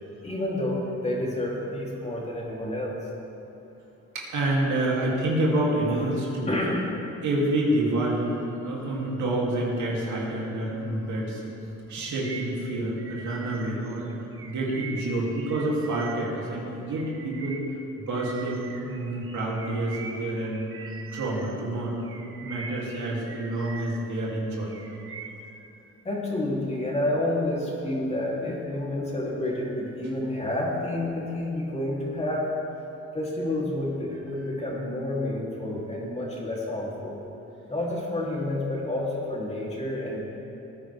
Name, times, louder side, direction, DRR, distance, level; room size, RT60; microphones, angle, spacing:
voice 1, 0.2-3.0 5.9-6.1 6.5-6.9 26.0-32.5 33.1-37.2 37.7-40.2, left 1 dB, 20° left, -4 dB, 3.0 m, -29 dB
voice 2, 4.1-6.5 7.2-11.4 11.9-14.1 14.4-17.6 18.0-20.6 21.1-24.8 25.4-25.5, right 1 dB, 75° right, -4 dB, 2.8 m, -28 dB
Bird vocalization bird call bird song, 12.0-16.5 16.9-21.6 22.0-24.1 24.5-25.5, right 4 dB, 45° right, 1.2 m, -43 dB
18.5 x 10.0 x 3.5 m, 2.9 s
cardioid pair, 90°, 30 cm